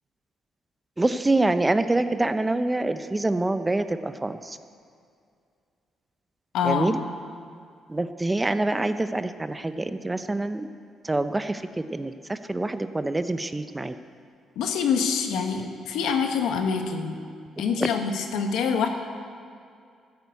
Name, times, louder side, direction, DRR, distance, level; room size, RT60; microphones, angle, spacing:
voice 1, 1.0-4.6 6.6-7.0 7.9-10.7 11.0-13.9 17.8-17.9, right 2 dB, 15° right, 10 dB, 0.7 m, -26 dB
voice 2, 6.5-7.0 14.5-17.2 17.6-18.9, left 6 dB, 85° left, 4 dB, 1.5 m, -25 dB
14.0 x 9.8 x 8.2 m, 2.3 s
cardioid pair, 90°, 0 cm